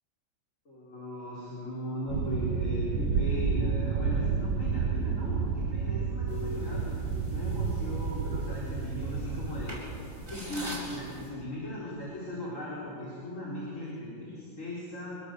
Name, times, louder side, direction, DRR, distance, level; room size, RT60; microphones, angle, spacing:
voice 1, 0.6-6.8 7.3-9.8 10.3-15.1, left 1 dB, 40° left, -7 dB, 5.0 m, -38 dB
sound 1, 2.1-9.7, right 5 dB, 75° right, 1.9 m, -30 dB
sound 2, 6.3-11.3, equal, 40° right, 7.8 m, -42 dB
26.0 x 20.5 x 6.7 m, 2.7 s
omnidirectional pair, 2.1 m